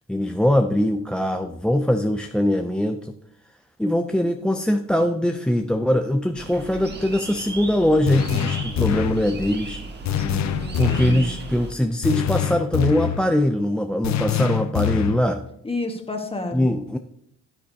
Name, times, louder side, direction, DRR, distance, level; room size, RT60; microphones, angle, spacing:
voice 1, 0.1-3.1 3.8-9.8 10.8-15.4 16.5-17.0, left 1 dB, 5° left, 7 dB, 0.4 m, -22 dB
sound 1, 6.4-11.7, right 2 dB, 35° right, 1.5 m, -36 dB
sound 2, 8.1-9.3 10.1-11.2 12.0-13.3 14.0-15.3, left 10 dB, 65° left, 0.7 m, -24 dB
voice 2, 10.2-11.3 15.6-16.7, left 2 dB, 20° left, 4 dB, 1.5 m, -31 dB
10.0 x 9.3 x 2.8 m, 0.73 s
cardioid pair, 90°, 30 cm